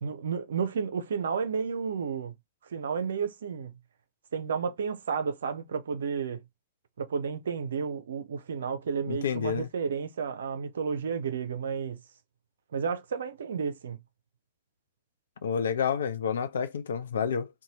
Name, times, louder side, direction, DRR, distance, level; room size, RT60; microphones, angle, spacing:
voice 1, 0.0-2.3 2.7-3.7 4.3-6.4 7.0-12.0 12.7-14.0, right 6 dB, 70° right, 0.5 m, -32 dB
voice 2, 9.1-9.7 15.4-17.5, left 7 dB, 70° left, 0.4 m, -29 dB
2.6 x 2.2 x 3.0 m
figure-of-eight pair, 95°, 0 cm